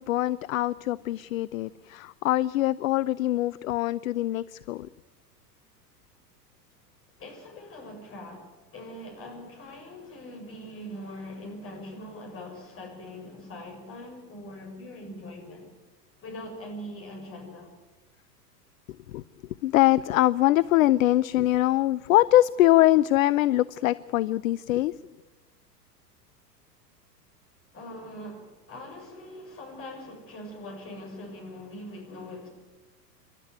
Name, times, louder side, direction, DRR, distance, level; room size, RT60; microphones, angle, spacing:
voice 1, 0.0-4.9 19.1-19.2 19.6-25.0, left 15 dB, 55° left, 18 dB, 0.6 m, -23 dB
voice 2, 7.2-15.7 16.2-17.7 27.7-32.5, left 1 dB, 25° left, 3 dB, 6.8 m, -42 dB
28.0 x 12.5 x 9.3 m, 1.2 s
figure-of-eight pair, 90°, 49 cm